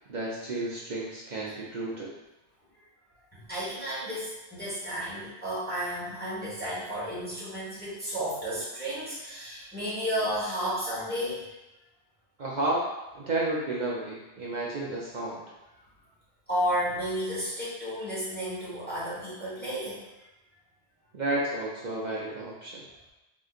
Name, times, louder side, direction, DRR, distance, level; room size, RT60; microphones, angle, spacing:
voice 1, 0.1-2.1 12.4-12.8 13.1-15.4 21.1-22.8, right 2 dB, 60° right, -5 dB, 0.5 m, -31 dB
voice 2, 3.3-11.4 16.5-20.0, equal, 10° left, -9 dB, 1.1 m, -32 dB
3.6 x 2.7 x 2.4 m, 1.0 s
omnidirectional pair, 1.2 m